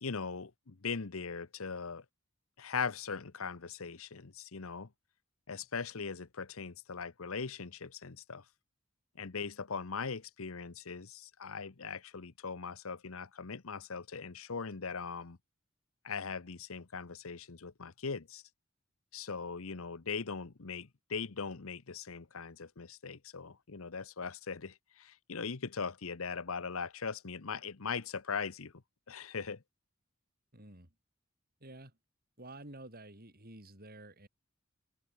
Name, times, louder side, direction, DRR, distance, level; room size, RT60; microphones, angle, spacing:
voice 1, 0.0-2.0 2.6-4.9 5.5-8.5 9.2-15.4 16.0-18.4 19.1-28.7 29.1-29.6, left 5 dB, 75° left, 1.0 m, -40 dB
voice 2, 30.5-30.9 31.6-31.9 32.4-34.3, right 2 dB, 45° right, 6.3 m, -50 dB
head